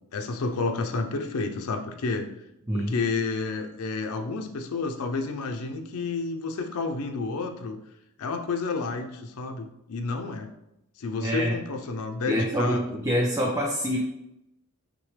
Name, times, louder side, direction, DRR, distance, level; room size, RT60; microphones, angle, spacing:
voice 1, 0.1-2.3 2.7-7.8 8.2-10.5 11.0-13.0, left 3 dB, 75° left, 4 dB, 0.5 m, -30 dB
voice 2, 11.2-11.6 12.3-14.0, equal, 15° right, -1 dB, 0.4 m, -25 dB
5.9 x 2.1 x 3.2 m, 0.86 s
head